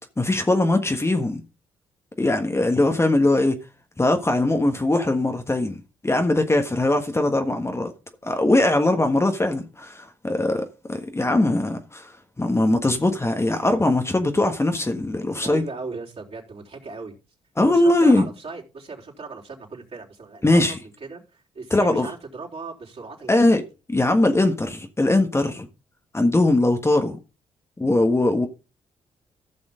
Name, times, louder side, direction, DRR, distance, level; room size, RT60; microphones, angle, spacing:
voice 1, 0.2-1.4 2.2-3.6 4.0-7.9 8.2-15.6 17.6-18.2 20.4-20.8 21.7-22.1 23.3-23.6 23.9-25.7 26.1-27.2 27.8-28.5, left 2 dB, 20° left, 1.5 m, -21 dB
voice 2, 15.3-17.2 17.6-23.6, right 4 dB, 45° right, 3.8 m, -37 dB
15.0 x 6.1 x 3.8 m
hypercardioid pair, 45°, 15 cm